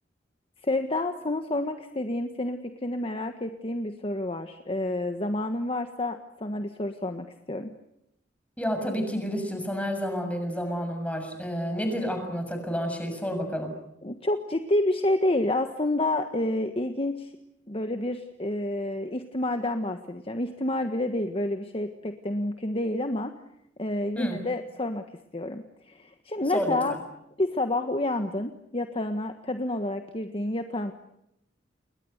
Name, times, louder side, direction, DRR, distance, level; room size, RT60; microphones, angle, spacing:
voice 1, 0.6-7.7 14.0-17.3 17.7-23.3 23.8-25.0 25.3-26.9 27.4-30.9, left 1 dB, 30° left, 7 dB, 1.5 m, -29 dB
voice 2, 8.6-13.7 24.2-24.4 26.5-27.0, equal, 5° left, 5 dB, 6.9 m, -30 dB
29.5 x 22.0 x 8.1 m, 0.80 s
head